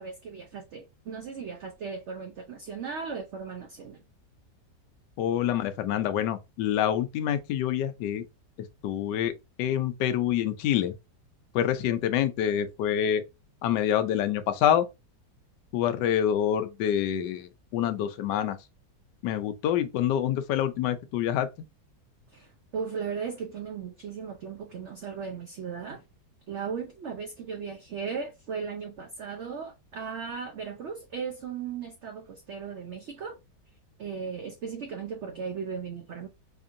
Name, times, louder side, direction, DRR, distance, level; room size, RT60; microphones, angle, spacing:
voice 1, 0.0-4.0 22.3-26.0 26.5-33.4 34.0-36.3, right 6 dB, 80° right, 0.6 m, -37 dB
voice 2, 5.2-8.2 8.8-9.3 9.6-10.9 11.5-13.2 13.6-14.9 15.7-18.6 19.2-21.5, left 10 dB, 85° left, 1.2 m, -26 dB
4.3 x 2.7 x 2.5 m
omnidirectional pair, 1.8 m